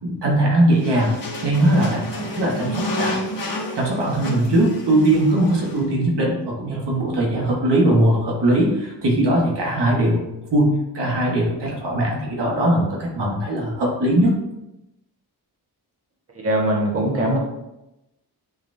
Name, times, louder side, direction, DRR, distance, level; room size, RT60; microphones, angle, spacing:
voice 1, 0.0-3.2 3.7-10.2 10.5-14.3, right 1 dB, 85° right, -2 dB, 1.6 m, -20 dB
sound 1, 0.7-5.8, left 1 dB, 55° left, 1.5 m, -30 dB
voice 2, 16.4-17.4, right 1 dB, 35° right, -3 dB, 1.4 m, -21 dB
10.0 x 3.5 x 2.7 m, 0.91 s
wide cardioid pair, 130°, 40 cm